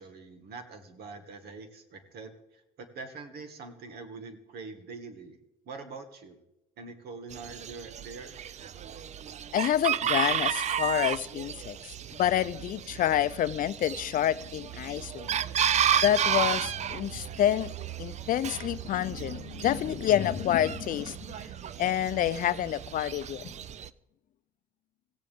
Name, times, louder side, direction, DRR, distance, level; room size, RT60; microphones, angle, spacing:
voice 1, 0.0-5.4 5.7-6.4 6.8-8.5, right 4 dB, 70° right, 2.0 m, -44 dB
Chicken rooster, 7.3-23.9, right 9 dB, 40° right, 0.5 m, -33 dB
voice 2, 9.5-15.4 16.0-17.7 18.0-21.5 21.8-23.5, left 11 dB, 55° left, 0.5 m, -28 dB
17.5 x 15.0 x 3.6 m
cardioid pair, 110°, 17 cm